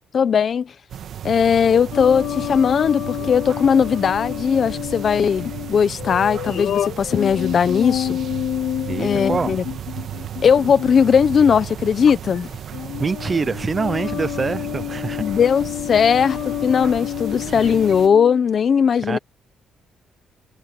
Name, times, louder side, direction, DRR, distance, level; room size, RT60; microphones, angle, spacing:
voice 1, 0.1-0.7 1.2-8.2 9.0-9.6 10.4-12.5 15.2-19.2, left 7 dB, 50° left, 0.9 m, -18 dB
sound 1, 0.9-18.1, right 10 dB, 65° right, 2.1 m, -34 dB
sound 2, 1.9-11.3 12.1-12.4 12.7-18.4, left 12 dB, 75° left, 1.8 m, -29 dB
voice 2, 8.9-9.6 13.0-15.2 15.9-16.1 19.0-19.2, right 4 dB, 30° right, 0.6 m, -25 dB
cardioid pair, 90°, 0 cm